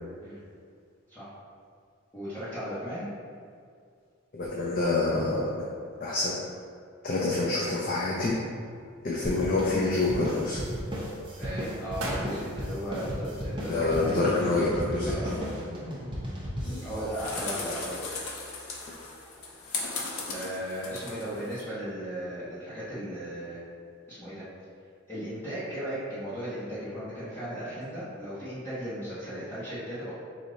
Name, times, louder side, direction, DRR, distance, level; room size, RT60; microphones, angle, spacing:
voice 1, 2.1-3.1 11.4-14.2 15.0-15.3 16.8-18.1 20.3-23.6 24.1-24.4 25.1-30.1, equal, 10° left, -16 dB, 1.2 m, -36 dB
voice 2, 4.3-5.5 6.0-6.4 7.0-8.4 9.0-10.6 13.7-15.4, left 2 dB, 40° left, -5 dB, 0.5 m, -27 dB
sound 1, 8.2-9.0 9.4-10.3 10.8-11.2 11.7-11.8 12.0-13.9 14.2-14.3, right 1 dB, 70° right, 0.7 m, -40 dB
sound 2, 9.2-18.1, equal, 25° right, 0.8 m, -35 dB
sound 3, 16.6-21.6, left 3 dB, 85° left, 0.8 m, -37 dB
4.9 x 2.8 x 3.9 m, 2.3 s
head